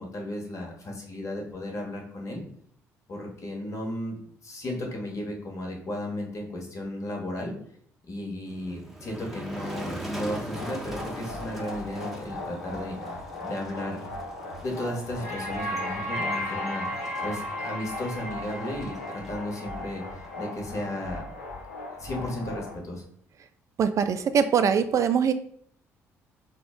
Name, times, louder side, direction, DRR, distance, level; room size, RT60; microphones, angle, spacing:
voice 1, 0.0-2.4 3.1-4.2 4.4-7.5 8.1-14.1 14.6-16.8 17.2-21.3 21.9-23.0, left 1 dB, 40° left, 0 dB, 1.1 m, -34 dB
Motor vehicle (road), 8.5-21.1, right 1 dB, ahead, 0.7 m, -42 dB
sound 1, 10.5-22.8, left 1 dB, 80° left, 0.5 m, -36 dB
voice 2, 23.8-25.3, right 7 dB, 45° right, 10 dB, 0.4 m, -22 dB
4.4 x 2.0 x 3.5 m, 0.64 s
figure-of-eight pair, 45°, 8 cm